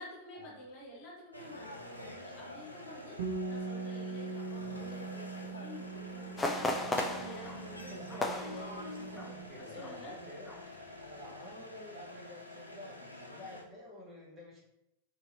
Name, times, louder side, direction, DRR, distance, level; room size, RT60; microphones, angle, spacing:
voice 1, 0.0-8.2 9.6-10.1, left 1 dB, 40° left, -4 dB, 1.1 m, -50 dB
sound 1, 1.3-13.6, left 1 dB, 85° left, 0.4 m, -47 dB
Bass guitar, 3.2-9.4, right 4 dB, 55° right, 0.5 m, -42 dB
sound 2, 6.4-9.4 9.8-10.0 10.5-10.8 11.2-11.3, left 2 dB, 15° left, 0.4 m, -36 dB
voice 2, 7.8-14.6, left 1 dB, 25° right, -5 dB, 1.0 m, -50 dB
2.8 x 2.7 x 2.5 m, 0.85 s
figure-of-eight pair, 90°, 0 cm